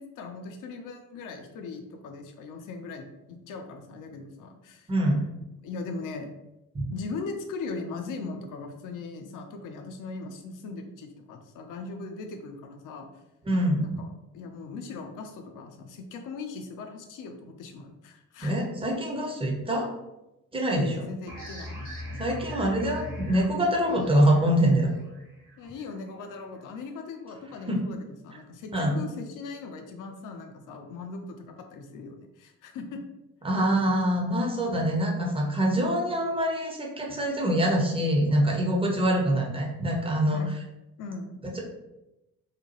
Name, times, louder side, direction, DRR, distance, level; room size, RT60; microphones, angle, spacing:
voice 1, 0.0-4.9 5.6-6.3 6.9-13.1 13.8-14.1 14.3-18.7 20.7-21.8 25.6-33.0 40.3-40.5 41.0-41.5, left 4 dB, 45° left, 4 dB, 0.5 m, -39 dB
voice 2, 13.5-13.9 18.4-19.9 20.5-21.1 22.2-24.9 27.7-27.8 28.7-29.0 33.4-40.4, right 1 dB, 10° right, -1 dB, 0.7 m, -24 dB
sound 1, 21.3-26.6, left 1 dB, 55° right, 1.4 m, -41 dB
2.9 x 2.2 x 2.9 m, 0.94 s
figure-of-eight pair, 40°, 47 cm